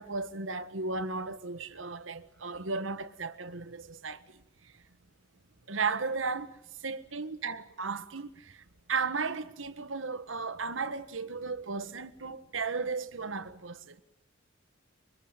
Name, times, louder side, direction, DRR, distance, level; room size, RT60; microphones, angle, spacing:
voice 1, 0.0-4.2 5.7-6.6 6.8-8.6 8.9-14.0, right 4 dB, 80° right, 1.5 m, -35 dB
26.0 x 23.5 x 9.1 m
head